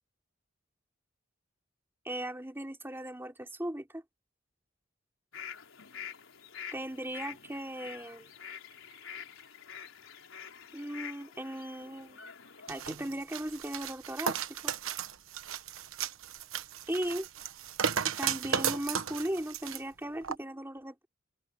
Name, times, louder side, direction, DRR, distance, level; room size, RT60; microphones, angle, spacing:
voice 1, 2.0-4.0 6.7-8.3 10.7-12.2 12.7-14.7 16.9-17.3 18.2-21.1, right 1 dB, 10° right, 3.1 m, -37 dB
sound 1, 5.3-12.8, left 8 dB, 75° left, 4.3 m, -47 dB
sound 2, 12.7-19.8 20.2-20.4, right 7 dB, 85° right, 1.1 m, -35 dB
head